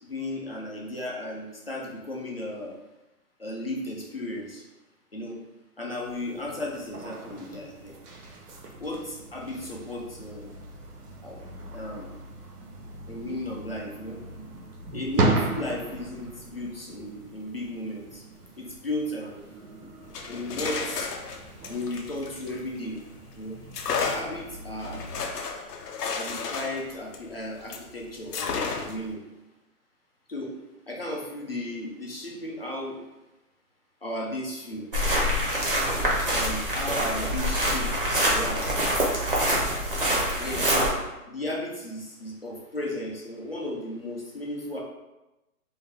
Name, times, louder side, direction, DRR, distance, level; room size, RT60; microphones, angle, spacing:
voice 1, 0.0-2.8 3.4-4.6 5.1-5.4 5.8-8.0 8.8-10.5 11.2-11.4 11.7-12.1 13.1-14.2 14.9-18.2 18.6-19.4 20.3-21.1 21.7-23.0 23.3-23.6 24.1-25.0 26.1-29.2 30.3-30.5 30.9-33.0 34.0-34.9 36.3-38.7 40.4-40.9 41.3-44.8, left 1 dB, 45° left, -3 dB, 0.4 m, -35 dB
sound 1, 6.0-25.2, right 3 dB, 90° right, 0.8 m, -36 dB
sound 2, 20.0-23.1 23.7-27.9 28.3-29.1, left 5 dB, 90° left, 0.6 m, -33 dB
sound 3, 34.9-40.9, equal, 40° right, 0.5 m, -25 dB
2.6 x 2.2 x 3.2 m, 0.98 s
hypercardioid pair, 170°, 45 cm